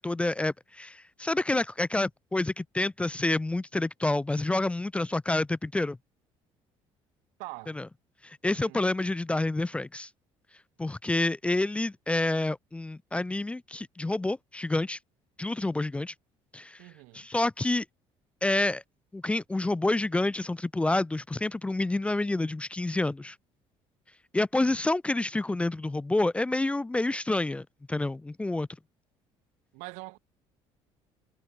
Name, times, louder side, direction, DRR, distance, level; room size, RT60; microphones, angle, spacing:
voice 1, 0.0-6.0 7.8-7.9 8.2-10.1 10.8-15.0 15.4-16.1 16.5-16.8 17.1-17.8 18.4-18.8 19.1-23.4 24.3-28.7, left 2 dB, 10° left, 0.3 m, -28 dB
voice 2, 7.4-7.8 8.5-8.9 16.8-17.3 29.7-30.2, right 27 dB, 90° right, 0.8 m, -44 dB
cardioid pair, 110°, 12 cm